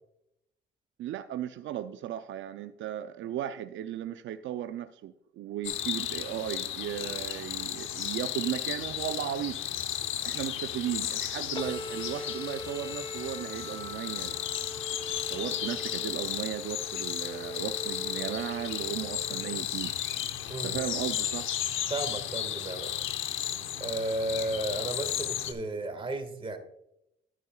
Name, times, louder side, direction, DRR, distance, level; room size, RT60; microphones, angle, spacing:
voice 1, 1.0-9.6 10.2-14.3 15.3-19.9 20.6-21.5, right 11 dB, 75° right, 10 dB, 0.5 m, -36 dB
sound 1, 5.6-25.5, left 10 dB, 80° left, 0.9 m, -34 dB
sound 2, 11.5-19.6, left 2 dB, 25° left, 0.9 m, -41 dB
voice 2, 21.9-22.9 23.8-26.6, right 2 dB, 25° right, 7 dB, 1.7 m, -33 dB
11.0 x 9.3 x 2.3 m, 0.81 s
cardioid pair, 90°, 20 cm